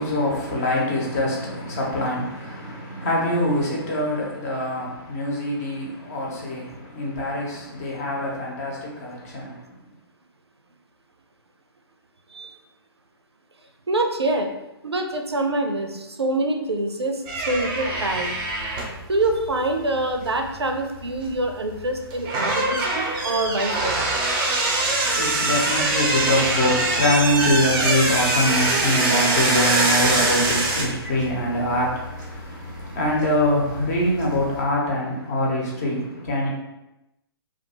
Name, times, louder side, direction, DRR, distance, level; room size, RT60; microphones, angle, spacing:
voice 1, 0.0-9.8 24.6-36.5, left 1 dB, 40° left, -3 dB, 0.8 m, -24 dB
voice 2, 13.9-14.5 14.8-18.5 19.1-24.0, right 2 dB, 85° right, 4 dB, 0.4 m, -25 dB
sound 1, 17.3-34.6, right 2 dB, 25° right, 0.4 m, -24 dB
2.4 x 2.2 x 2.9 m, 0.94 s
figure-of-eight pair, 125°, 13 cm